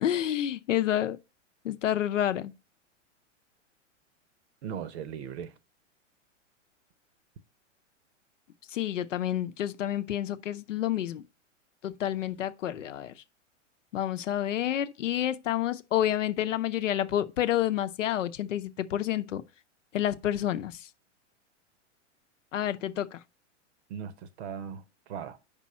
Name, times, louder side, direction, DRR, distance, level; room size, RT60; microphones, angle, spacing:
voice 1, 0.0-1.2 1.6-2.5 8.7-11.2 11.8-13.1 13.9-19.4 19.9-20.9 22.5-23.2, left 11 dB, 80° left, 0.7 m, -29 dB
voice 2, 4.6-5.5 23.9-25.4, right 8 dB, 60° right, 0.9 m, -38 dB
6.2 x 5.3 x 4.2 m
hypercardioid pair, 110°, 37 cm